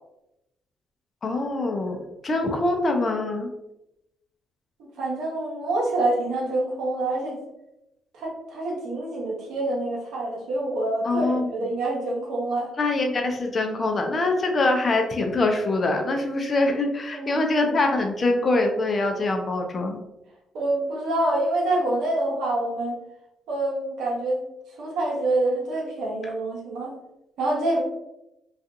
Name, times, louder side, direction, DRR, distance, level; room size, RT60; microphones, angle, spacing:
voice 1, 1.2-3.5 11.0-11.5 12.8-20.0, left 2 dB, 45° left, 4 dB, 0.5 m, -24 dB
voice 2, 5.0-7.4 8.2-12.7 17.1-17.5 20.5-23.0 23.5-24.4 24.8-26.9 27.4-27.8, right 2 dB, 75° right, -2 dB, 0.8 m, -26 dB
2.5 x 2.4 x 2.6 m, 0.88 s
hypercardioid pair, 50°, 0 cm